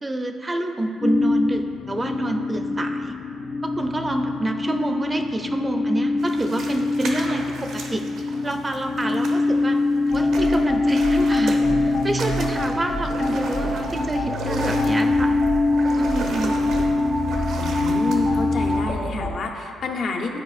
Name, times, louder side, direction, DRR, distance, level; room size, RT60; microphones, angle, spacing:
voice 1, 0.0-3.1 3.6-8.0 8.4-9.8 10.1-15.3 16.0-16.6, right 1 dB, 20° right, 5 dB, 0.5 m, -27 dB
sound 1, 1.0-18.9, left 3 dB, 45° left, 0.3 m, -24 dB
sound 2, 6.2-9.8 10.1-18.8, right 3 dB, 80° right, 0.8 m, -35 dB
sound 3, 10.1-19.3, equal, 85° left, 1.4 m, -29 dB
voice 2, 17.6-20.4, left 4 dB, 65° left, 2 dB, 0.7 m, -29 dB
11.0 x 4.6 x 2.4 m, 2.5 s
cardioid pair, 90°, 0 cm